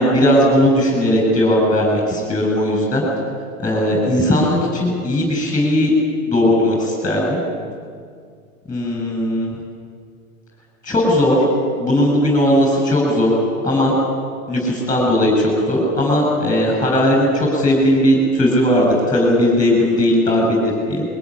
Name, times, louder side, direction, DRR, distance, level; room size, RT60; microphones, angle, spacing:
voice 1, 0.0-3.0 3.6-5.9 6.3-7.4 8.7-9.5 10.8-11.4 11.8-13.3 13.6-13.9 14.5-21.0, left 1 dB, 10° left, -1 dB, 7.1 m, -17 dB
22.5 x 18.5 x 10.0 m, 2.1 s
hypercardioid pair, 110°, 41 cm